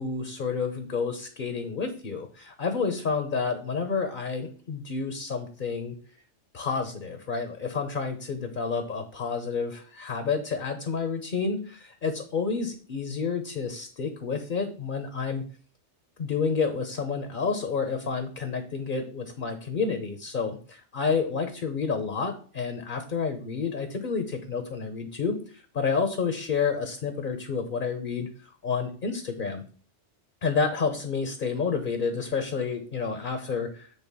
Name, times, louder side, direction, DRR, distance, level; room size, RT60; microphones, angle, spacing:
voice 1, 0.0-6.0 6.5-15.4 16.2-29.6 30.4-33.9, left 5 dB, 45° left, 6 dB, 1.0 m, -29 dB
8.5 x 3.9 x 5.5 m, 0.41 s
omnidirectional pair, 1.2 m